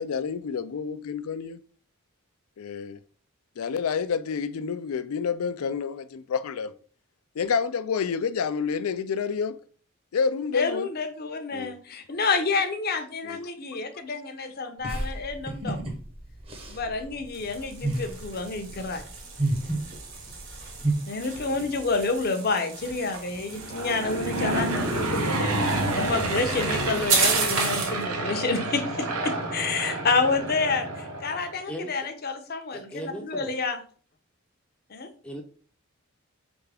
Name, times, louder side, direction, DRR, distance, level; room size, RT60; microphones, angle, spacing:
voice 1, 0.0-1.6 2.6-3.0 3.6-6.7 7.4-9.6 10.1-10.9 11.5-11.7 13.2-13.4, left 6 dB, 80° left, 0.4 m, -28 dB
voice 2, 10.5-15.9 16.7-19.0 21.1-33.8 34.9-35.1, left 4 dB, 45° left, 0.7 m, -29 dB
sound 1, 14.8-20.9, right 2 dB, 25° right, 0.8 m, -31 dB
sound 2, 17.3-28.0, right 4 dB, 65° right, 1.5 m, -33 dB
Aircraft / Engine, 23.5-31.5, right 2 dB, 90° right, 0.9 m, -29 dB
voice 3, 31.7-32.1 32.7-33.5 35.2-35.4, equal, 5° left, 0.5 m, -37 dB
4.4 x 3.5 x 3.4 m
head